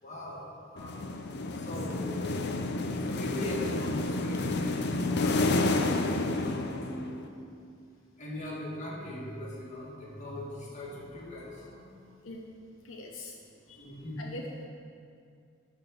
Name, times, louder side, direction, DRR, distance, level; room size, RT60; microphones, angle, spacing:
voice 1, 0.0-1.0 1.6-2.4 3.0-7.5 8.2-12.0 13.8-14.3, left 1 dB, 40° left, -5 dB, 2.2 m, -39 dB
sound 1, 0.8-7.3, left 2 dB, 60° left, 0.6 m, -30 dB
voice 2, 12.8-13.3 13.7-13.8 14.2-14.6, left 2 dB, 80° left, 0 dB, 0.9 m, -42 dB
12.5 x 4.5 x 6.6 m, 2.4 s
head